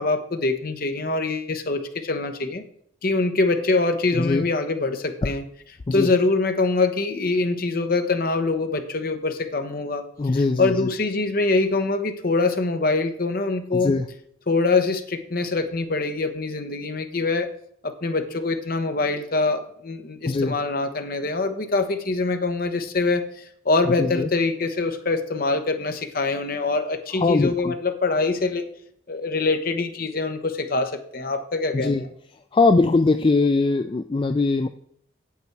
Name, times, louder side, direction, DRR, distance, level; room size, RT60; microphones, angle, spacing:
voice 1, 0.0-2.6 3.0-5.4 5.9-10.0 10.6-13.9 14.5-17.5 17.8-28.7 29.1-32.1, left 3 dB, 50° left, 7 dB, 1.0 m, -24 dB
voice 2, 4.1-4.5 5.2-5.3 5.9-6.1 10.2-10.9 13.7-14.1 20.3-20.6 23.9-24.3 27.2-27.7 31.7-32.0 32.5-34.7, left 3 dB, 25° left, 8 dB, 0.3 m, -21 dB
8.3 x 7.9 x 4.6 m, 0.67 s
head